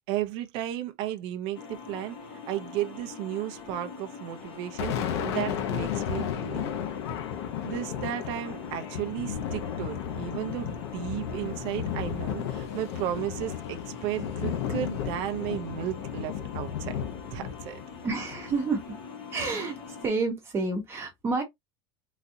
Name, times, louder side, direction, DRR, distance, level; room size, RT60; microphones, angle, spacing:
voice 1, 0.1-2.2 2.5-6.7 7.6-17.0 17.3-17.8, right 12 dB, 40° right, 0.5 m, -34 dB
sound 1, 1.5-20.1, left 6 dB, 35° left, 1.0 m, -44 dB
Thunder, 4.4-19.0, left 8 dB, 80° left, 0.8 m, -34 dB
voice 2, 18.0-19.0 19.3-19.8 20.0-21.4, right 3 dB, 20° right, 1.0 m, -29 dB
4.0 x 2.5 x 2.6 m
supercardioid pair, 170°, 14 cm